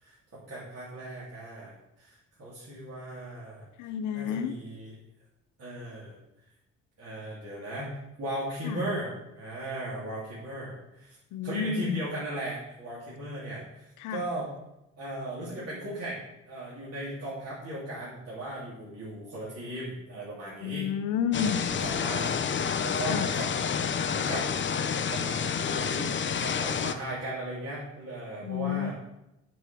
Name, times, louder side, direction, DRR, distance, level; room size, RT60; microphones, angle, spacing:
voice 1, 0.0-3.7 4.1-4.9 5.6-6.1 7.0-11.2 11.4-14.5 15.0-16.2 16.5-20.9 21.3-23.5 23.8-24.5 24.9-28.9, right 1 dB, 55° right, -8 dB, 3.1 m, -37 dB
voice 2, 3.8-4.5 8.6-8.8 11.3-12.0 14.0-14.2 20.6-21.6 23.1-23.3 28.4-28.9, left 8 dB, 90° left, 11 dB, 0.6 m, -30 dB
sound 1, 21.3-26.9, left 7 dB, 40° left, 0.7 m, -29 dB
7.7 x 5.1 x 6.9 m, 0.89 s
cardioid pair, 90°, 30 cm